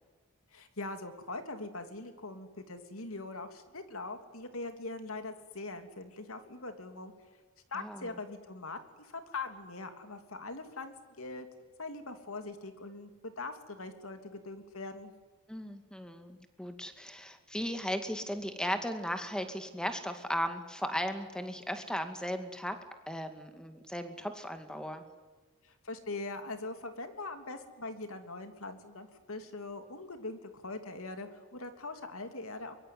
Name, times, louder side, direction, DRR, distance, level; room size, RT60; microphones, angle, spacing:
voice 1, 0.5-7.1 7.7-11.5 11.8-15.1 25.6-32.8, left 3 dB, 75° left, 7 dB, 3.1 m, -42 dB
voice 2, 7.7-8.1 15.5-22.8 23.1-25.0, equal, 5° left, 7 dB, 2.2 m, -36 dB
23.5 x 23.0 x 9.4 m, 1.4 s
head